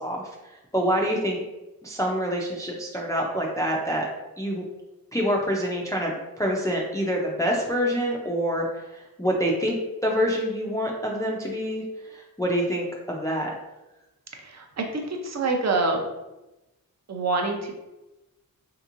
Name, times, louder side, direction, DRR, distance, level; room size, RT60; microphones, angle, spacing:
voice 1, 0.0-1.4 1.8-4.1 4.4-4.6 5.1-9.8 10.0-13.6, equal, 10° left, -2 dB, 0.4 m, -26 dB
voice 2, 14.3-16.0 17.1-17.7, right 3 dB, 50° right, 3 dB, 0.6 m, -26 dB
3.5 x 2.8 x 2.5 m, 1.0 s
wide cardioid pair, 105°, 36 cm